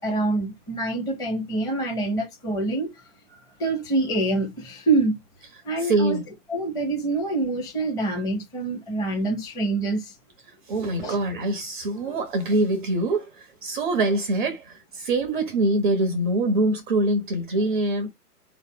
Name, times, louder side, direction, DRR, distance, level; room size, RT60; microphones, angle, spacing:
voice 1, 0.0-3.0 3.3-5.2 5.6-6.2 6.5-10.1 10.8-11.2, right 2 dB, 10° left, 0.9 m, -26 dB
voice 2, 5.9-6.2 10.7-18.1, right 2 dB, 30° right, 0.6 m, -24 dB
4.0 x 2.8 x 3.7 m
figure-of-eight pair, 130°, 48 cm